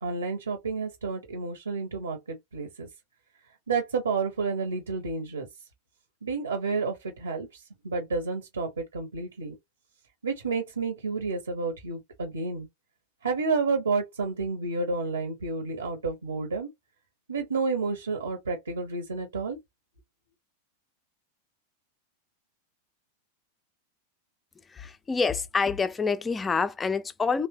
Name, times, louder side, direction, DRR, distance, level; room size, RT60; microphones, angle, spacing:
voice 1, 0.0-2.9 3.7-5.5 6.2-7.5 7.8-9.5 10.2-12.7 13.2-16.7 17.3-19.6, right 4 dB, 75° right, 0.9 m, -30 dB
voice 2, 24.7-27.5, left 5 dB, 15° left, 0.3 m, -27 dB
3.1 x 2.1 x 2.9 m
figure-of-eight pair, 90°, 0 cm